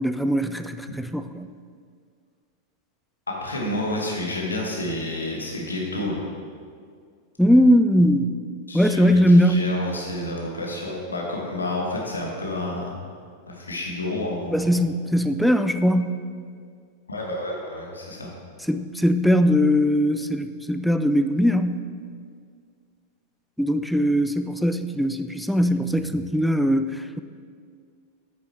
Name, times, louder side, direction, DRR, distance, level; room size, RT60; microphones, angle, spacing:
voice 1, 0.0-1.5 7.4-8.3 8.7-9.6 14.5-16.2 18.7-21.8 23.6-27.2, equal, ahead, 9 dB, 0.3 m, -20 dB
voice 2, 3.3-6.2 8.7-12.9 13.5-14.7 17.1-18.3, left 1 dB, 75° left, -1 dB, 1.2 m, -29 dB
8.8 x 6.2 x 3.3 m, 2.1 s
figure-of-eight pair, 90°, 0 cm